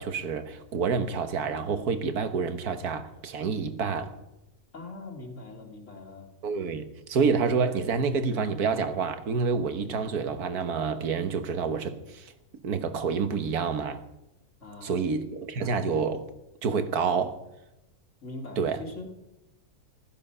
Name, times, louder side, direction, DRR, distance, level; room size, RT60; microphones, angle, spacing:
voice 1, 0.0-4.1 6.4-12.3 12.6-14.0 14.8-16.3 16.6-17.4 18.6-18.8, right 5 dB, 75° right, 1.7 m, -28 dB
voice 2, 4.7-6.3 14.6-15.0 18.2-19.1, left 2 dB, 50° left, 2.6 m, -41 dB
14.5 x 13.0 x 5.6 m
omnidirectional pair, 1.6 m